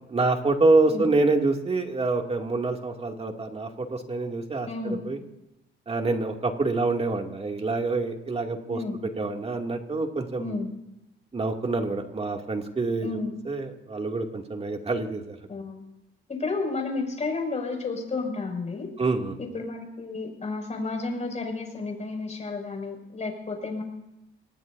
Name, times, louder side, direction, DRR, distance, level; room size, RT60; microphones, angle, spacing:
voice 1, 0.1-5.2 5.9-8.8 9.2-10.6 11.3-13.2 13.4-15.4 19.0-19.3, right 3 dB, 30° right, 2 dB, 2.6 m, -26 dB
voice 2, 4.7-5.0 8.7-9.0 10.4-10.7 13.0-13.4 15.5-15.8 16.3-18.9 19.4-23.8, left 3 dB, 35° left, 2 dB, 6.5 m, -32 dB
27.0 x 19.5 x 2.8 m, 0.91 s
cardioid pair, 90°, 20 cm